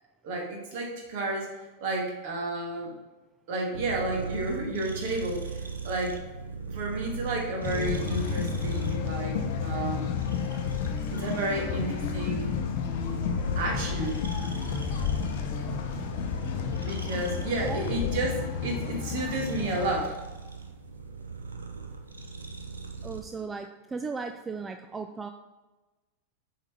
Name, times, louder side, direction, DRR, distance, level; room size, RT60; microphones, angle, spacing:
voice 1, 0.2-1.5 1.8-2.9 3.5-6.2 6.7-10.1 11.1-12.5 13.5-14.2 16.8-20.2, right 2 dB, 50° right, 0 dB, 1.5 m, -31 dB
sound 1, 3.7-23.2, right 4 dB, 75° right, 0.7 m, -40 dB
sound 2, 7.6-20.0, left 6 dB, 50° left, 0.7 m, -31 dB
voice 2, 23.0-25.3, right 4 dB, 15° right, 6 dB, 0.3 m, -36 dB
7.2 x 4.0 x 3.4 m, 1.2 s
figure-of-eight pair, 90°, 0 cm